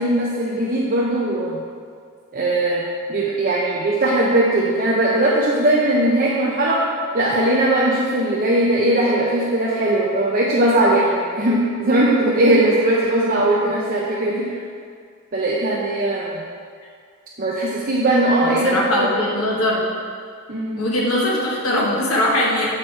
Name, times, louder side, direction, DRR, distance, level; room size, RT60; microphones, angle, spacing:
voice 1, 0.0-1.6 2.3-2.8 3.1-6.8 7.1-14.6 15.3-16.4 17.4-19.1 20.5-20.8, right 1 dB, 40° right, -5 dB, 0.8 m, -19 dB
voice 2, 18.4-19.8 20.8-22.7, left 1 dB, 75° left, -4 dB, 1.3 m, -21 dB
7.7 x 6.0 x 4.5 m, 2.1 s
head